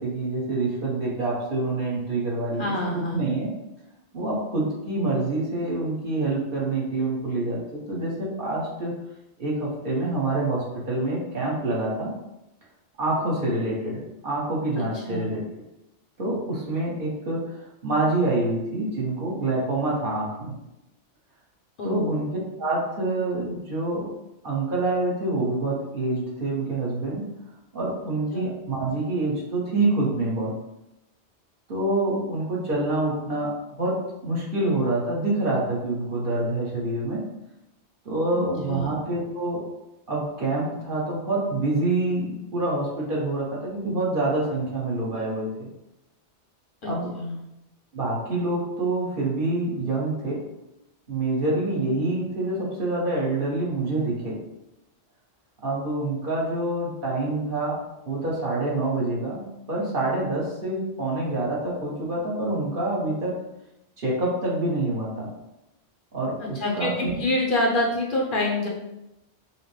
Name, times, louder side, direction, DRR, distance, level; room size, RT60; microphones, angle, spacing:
voice 1, 0.0-3.5 4.1-9.0 9.4-12.1 13.0-15.6 16.2-20.6 21.8-24.1 24.4-27.2 27.7-30.6 31.7-37.2 38.0-39.6 40.1-45.7 46.8-47.1 47.9-50.5 51.1-54.4 55.6-57.8 58.0-63.3 64.0-65.3 66.1-67.1, right 2 dB, 50° right, -5 dB, 1.2 m, -26 dB
voice 2, 2.6-3.2 14.8-15.3 21.8-22.1 28.3-28.4 38.3-38.9 46.8-46.9 47.2-47.4 66.6-68.7, left 1 dB, 55° left, -2 dB, 0.8 m, -26 dB
5.5 x 2.1 x 3.1 m, 0.91 s
omnidirectional pair, 1.2 m